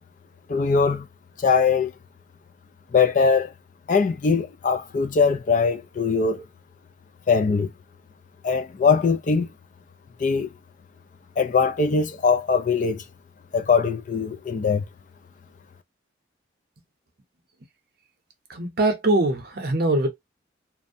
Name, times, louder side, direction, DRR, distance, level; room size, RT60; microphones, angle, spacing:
voice 1, 0.5-1.1 1.4-1.9 2.9-3.5 3.9-6.4 7.3-7.7 8.4-9.5 10.2-10.5 11.4-13.0 13.5-14.8, left 5 dB, 40° left, 0.3 m, -21 dB
voice 2, 18.5-20.1, right 2 dB, 50° right, 0.7 m, -22 dB
2.6 x 2.1 x 2.5 m
head